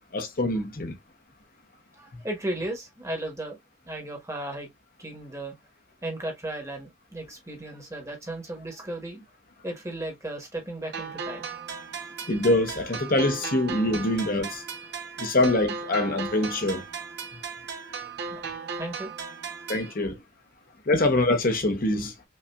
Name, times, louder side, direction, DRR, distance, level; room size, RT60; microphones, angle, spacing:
voice 1, 0.1-1.0 12.3-14.6 15.2-16.8 19.7-20.2 20.9-22.1, left 2 dB, 40° left, 0.8 m, -24 dB
voice 2, 1.9-3.6 3.8-4.7 5.0-5.5 6.0-9.2 9.6-11.4 18.3-18.4 18.8-19.1 20.0-20.1, right 1 dB, 15° right, 1.1 m, -35 dB
sound 1, 10.9-19.9, right 5 dB, 50° right, 0.6 m, -37 dB
5.3 x 2.5 x 2.3 m
head